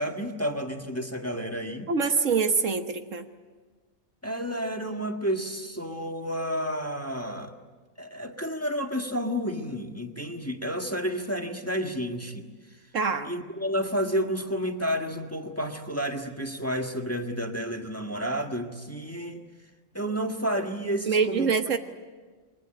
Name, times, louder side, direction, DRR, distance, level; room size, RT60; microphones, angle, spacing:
voice 1, 0.0-1.9 4.2-7.5 8.0-12.5 13.3-19.4 19.9-21.5, equal, 10° left, 3 dB, 1.7 m, -30 dB
voice 2, 1.9-3.3 12.9-13.3 21.1-21.8, right 5 dB, 65° right, 7 dB, 1.6 m, -25 dB
28.5 x 23.0 x 9.0 m, 1.4 s
omnidirectional pair, 1.4 m